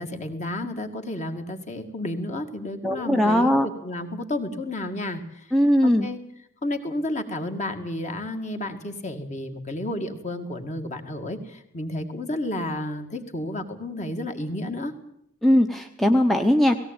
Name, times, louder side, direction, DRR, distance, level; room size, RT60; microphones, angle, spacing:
voice 1, 0.0-5.5 5.8-6.2 6.6-14.9, left 1 dB, 30° left, 5 dB, 2.1 m, -31 dB
voice 2, 2.8-3.7 5.5-6.1 15.4-16.8, equal, ahead, 4 dB, 0.8 m, -19 dB
18.0 x 17.5 x 8.9 m, 0.74 s
head